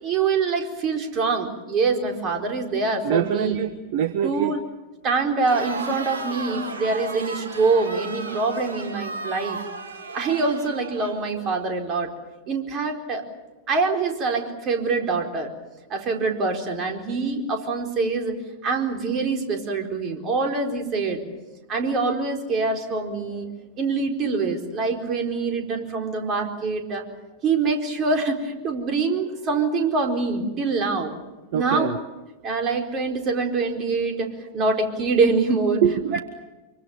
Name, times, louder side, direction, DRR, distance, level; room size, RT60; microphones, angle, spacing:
voice 1, 0.0-3.6 4.2-4.6 5.0-9.6 10.1-12.1 12.5-13.2 13.7-15.5 15.9-18.4 18.6-21.2 21.7-23.5 23.8-27.0 27.4-31.1 31.5-31.9 32.4-35.8, right 4 dB, 30° right, 3 dB, 4.4 m, -24 dB
voice 2, 3.0-4.6 31.5-32.0 35.8-36.2, right 9 dB, 50° right, 13 dB, 1.1 m, -24 dB
Crowd, 5.4-11.6, right 3 dB, 70° right, 2.6 m, -35 dB
25.5 x 24.0 x 7.1 m, 1.2 s
figure-of-eight pair, 90°, 0 cm